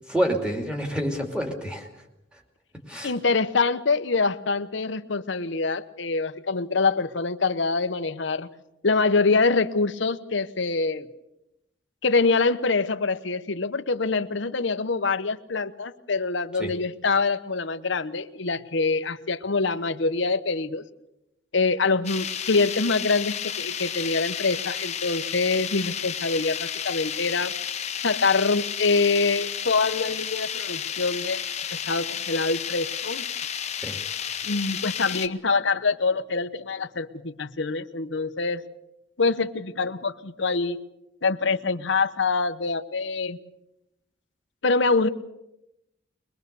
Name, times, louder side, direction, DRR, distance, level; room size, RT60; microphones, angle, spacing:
voice 1, 0.1-1.9 2.9-3.1 16.6-16.7 33.7-34.0, equal, 5° right, 3 dB, 2.6 m, -28 dB
voice 2, 3.0-8.5 8.8-11.1 12.0-20.8 21.5-27.5 28.0-31.4 31.7-33.2 34.4-38.6 39.2-40.8 41.2-43.4 44.6-45.1, left 4 dB, 65° left, 11 dB, 0.9 m, -25 dB
sound 1, 22.0-35.3, left 8 dB, 35° left, 0.9 m, -32 dB
22.5 x 20.5 x 6.8 m, 0.89 s
head